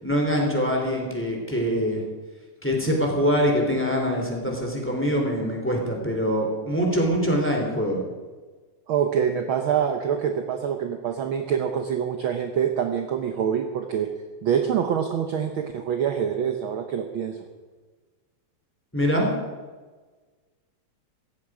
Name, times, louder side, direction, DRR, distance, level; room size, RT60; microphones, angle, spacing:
voice 1, 0.0-2.0 2.6-8.0 18.9-19.3, equal, 5° left, 1 dB, 2.8 m, -24 dB
voice 2, 8.9-14.1 14.4-17.4, right 8 dB, 70° right, 6 dB, 1.2 m, -25 dB
17.0 x 14.0 x 4.9 m, 1.4 s
omnidirectional pair, 3.4 m